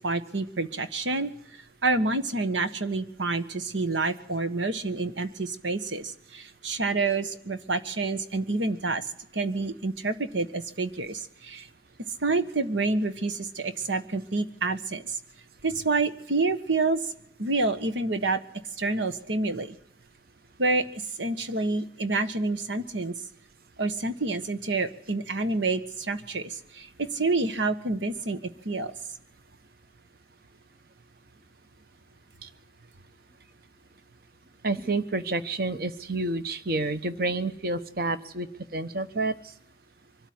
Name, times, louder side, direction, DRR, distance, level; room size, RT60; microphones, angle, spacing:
voice 1, 0.0-1.3 1.8-9.1 9.3-11.7 12.2-15.2 15.6-17.0 17.4-18.4 18.8-19.7 20.6-20.9 21.2-23.1 23.8-28.9, right 3 dB, 90° right, 10 dB, 1.5 m, -28 dB
voice 2, 34.6-38.5 38.7-39.3, right 2 dB, 55° right, 11 dB, 1.1 m, -29 dB
24.0 x 13.0 x 9.7 m, 0.73 s
head